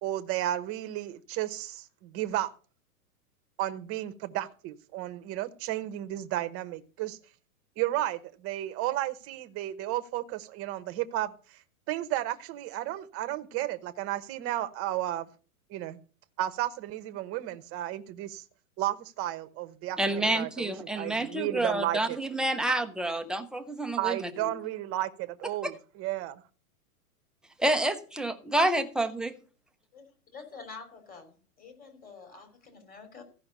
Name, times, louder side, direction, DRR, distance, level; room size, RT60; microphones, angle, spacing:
voice 1, 0.0-2.5 3.6-7.2 7.8-11.6 11.9-15.3 15.7-16.0 16.4-18.4 18.8-22.2 24.0-26.4, right 14 dB, 30° right, 1.0 m, -33 dB
voice 2, 20.0-24.5 25.6-25.7 27.6-29.3, right 1 dB, ahead, 0.6 m, -28 dB
voice 3, 30.3-33.2, left 4 dB, 20° left, 3.3 m, -47 dB
15.0 x 5.8 x 6.6 m
hypercardioid pair, 130°, 45 cm